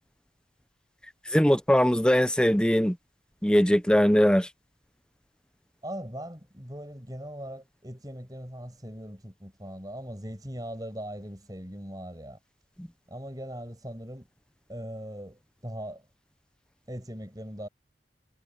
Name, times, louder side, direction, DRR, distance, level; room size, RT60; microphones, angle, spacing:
voice 1, 1.3-3.0 3.4-4.5 12.8-12.9, equal, 5° left, 0.8 m, -21 dB
voice 2, 5.8-12.4 13.1-14.3 14.7-16.1 16.9-17.7, equal, 20° right, 7.7 m, -40 dB
head